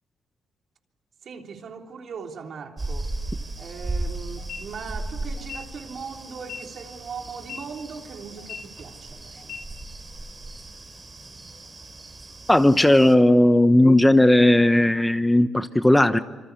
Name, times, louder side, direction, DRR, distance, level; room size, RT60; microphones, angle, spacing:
voice 1, 1.2-3.2 3.6-9.6, right 5 dB, 55° right, 3.4 m, -39 dB
sound 1, 2.8-13.1, right 2 dB, 25° right, 3.9 m, -36 dB
sound 2, 4.4-4.6 5.4-5.6 6.4-6.6 7.4-7.6 8.4-8.6 9.4-9.6, left 8 dB, 80° left, 3.3 m, -37 dB
voice 2, 12.5-16.2, left 1 dB, 10° left, 1.0 m, -16 dB
27.0 x 25.0 x 8.3 m
cardioid pair, 90°, 0 cm